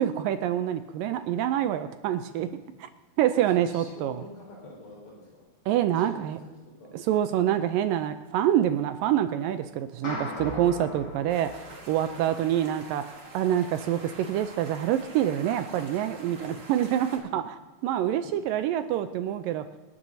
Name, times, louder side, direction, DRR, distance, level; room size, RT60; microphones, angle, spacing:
voice 1, 0.0-2.5 3.2-4.2 5.7-6.4 6.9-11.6 11.9-13.1 13.3-19.7, right 11 dB, 80° right, 10 dB, 2.1 m, -26 dB
voice 2, 2.3-2.7 3.5-5.5 6.0-6.2 6.8-6.9 12.1-12.3 18.2-18.3, left 2 dB, 80° left, -4 dB, 6.9 m, -45 dB
sound 1, 10.0-12.5, left 1 dB, 30° left, 4.3 m, -38 dB
sound 2, 11.3-17.2, right 2 dB, 50° right, 3.2 m, -46 dB
26.5 x 10.5 x 2.7 m, 1.2 s
omnidirectional pair, 4.4 m